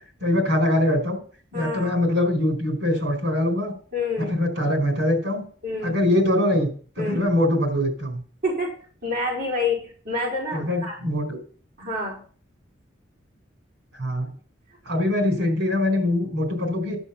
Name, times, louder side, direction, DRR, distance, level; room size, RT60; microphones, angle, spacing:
voice 1, 0.2-1.2 1.5-3.7 4.2-5.4 5.8-6.7 7.0-8.2 10.5-11.4 14.0-14.3 14.8-17.0, left 1 dB, 90° right, 4 dB, 4.5 m, -23 dB
voice 2, 1.5-1.9 3.9-4.3 5.6-6.0 7.0-7.2 8.4-8.7 9.0-11.0 11.8-12.2, left 2 dB, 50° right, -4 dB, 4.5 m, -27 dB
11.0 x 7.9 x 5.8 m, 0.44 s
head